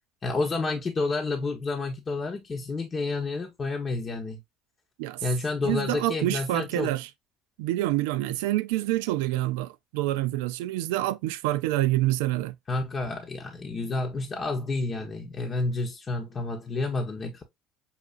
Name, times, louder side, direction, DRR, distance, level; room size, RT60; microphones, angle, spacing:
voice 1, 0.2-4.4 5.2-6.9 12.7-17.4, left 3 dB, 35° left, 0.9 m, -30 dB
voice 2, 5.6-7.1 7.6-12.5, right 16 dB, 80° right, 0.3 m, -27 dB
5.6 x 2.5 x 2.4 m
hypercardioid pair, 75°, 0 cm